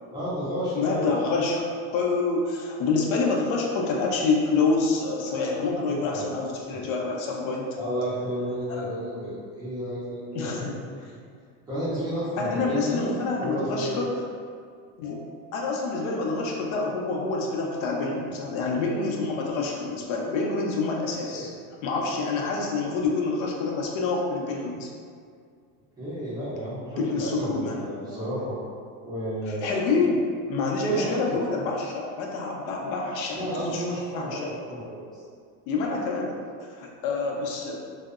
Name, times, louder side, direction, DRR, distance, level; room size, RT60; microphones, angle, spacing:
voice 1, 0.1-1.1 5.9-6.2 6.7-6.8 7.8-11.1 11.7-13.1 13.4-14.1 21.2-21.5 26.0-28.5 29.0-29.8 30.9-31.3 33.3-35.2, equal, 10° right, -12 dB, 0.4 m, -32 dB
voice 2, 0.7-1.6 1.9-7.7 8.7-8.8 10.3-10.8 11.0-11.1 12.4-14.1 15.0-15.2 15.5-21.5 21.8-24.9 27.0-27.8 29.5-33.8 34.1-34.5 35.7-36.4 36.7-37.7, left 3 dB, 85° left, -1 dB, 0.6 m, -27 dB
2.7 x 2.0 x 2.3 m, 2.1 s
cardioid pair, 160°, 40 cm